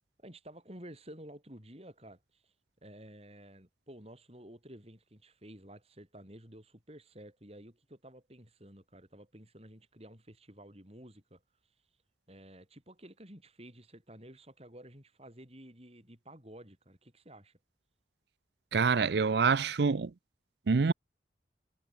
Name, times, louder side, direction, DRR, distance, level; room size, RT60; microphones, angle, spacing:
voice 1, 0.2-2.5 2.8-11.7 12.3-17.6, right 1 dB, 35° right, 5.8 m, -52 dB
voice 2, 18.7-20.1 20.7-20.9, right 5 dB, 65° right, 0.5 m, -26 dB
head